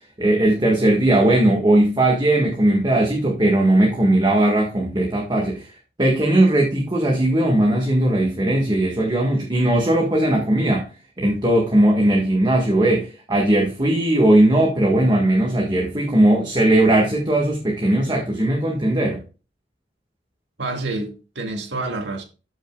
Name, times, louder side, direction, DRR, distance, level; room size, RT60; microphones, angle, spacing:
voice 1, 0.2-5.7 6.0-10.9 11.2-19.2, right 1 dB, 25° right, 1.7 m, -18 dB
voice 2, 20.6-22.2, right 2 dB, 75° right, 2.0 m, -28 dB
13.0 x 6.5 x 2.4 m
head